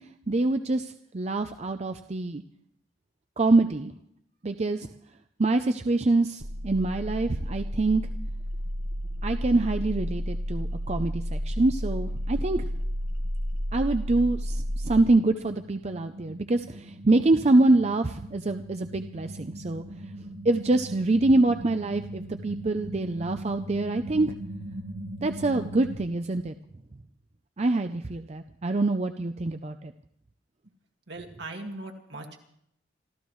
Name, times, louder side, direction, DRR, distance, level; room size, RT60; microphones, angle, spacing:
voice 1, 0.3-2.4 3.4-3.9 4.4-4.9 5.4-8.0 9.2-12.6 13.7-19.8 20.4-24.3 25.2-26.5 27.6-29.9, right 2 dB, 35° right, 7 dB, 0.5 m, -25 dB
sound 1, 6.4-26.0, equal, 55° right, 1.5 m, -34 dB
voice 2, 31.1-32.4, right 2 dB, 70° right, 2 dB, 2.0 m, -39 dB
26.5 x 14.0 x 3.2 m, 0.72 s
head